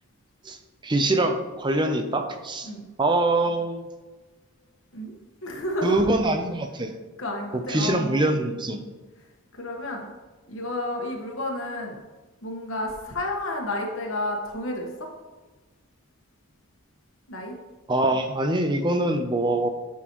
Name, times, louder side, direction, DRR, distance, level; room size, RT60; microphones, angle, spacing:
voice 1, 0.8-2.7 3.0-3.9 5.8-6.9 7.5-8.8 17.9-19.7, right 2 dB, 20° right, 7 dB, 0.5 m, -24 dB
voice 2, 5.4-6.0 7.2-8.2 9.5-10.1 10.5-12.0 12.4-15.1 17.3-17.5, left 1 dB, 60° left, 0 dB, 1.4 m, -31 dB
9.4 x 6.2 x 3.0 m, 1.2 s
head